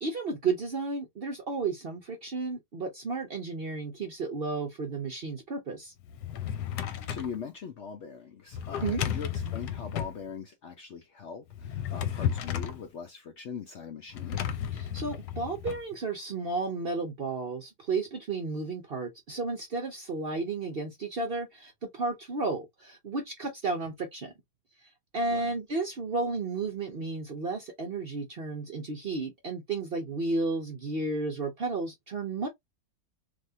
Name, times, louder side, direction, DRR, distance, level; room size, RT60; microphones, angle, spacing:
voice 1, 0.0-5.9 8.8-9.0 14.7-24.3 24.8-32.5, right 3 dB, 50° right, 0.7 m, -33 dB
Drawer open or close, 6.0-7.4 8.5-10.2 11.5-12.8 14.1-15.8, left 9 dB, 85° left, 1.2 m, -33 dB
voice 2, 6.8-14.5 25.3-25.5, left 6 dB, 60° left, 0.7 m, -41 dB
3.4 x 2.7 x 2.6 m
omnidirectional pair, 1.7 m